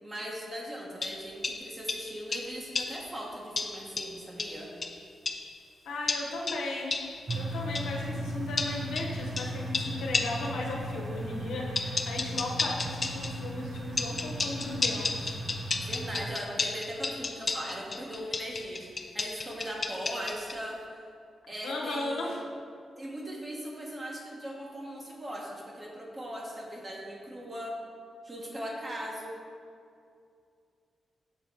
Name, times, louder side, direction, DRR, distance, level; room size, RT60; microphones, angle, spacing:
voice 1, 0.0-4.7 15.7-21.0 21.5-22.4 23.0-27.8 28.2-29.4, equal, 30° right, -2 dB, 1.5 m, -39 dB
sound 1, 1.0-3.1 3.6-5.6 6.1-8.0 8.6-10.6 11.8-13.4 14.0-20.6, left 4 dB, 45° left, 0.5 m, -34 dB
voice 2, 5.8-7.0 7.3-15.4 21.6-22.4, left 2 dB, 85° left, -3 dB, 1.1 m, -36 dB
sound 2, 7.3-16.3, right 1 dB, 45° right, 0.4 m, -37 dB
7.4 x 3.7 x 4.7 m, 2.4 s
supercardioid pair, 55°, 0 cm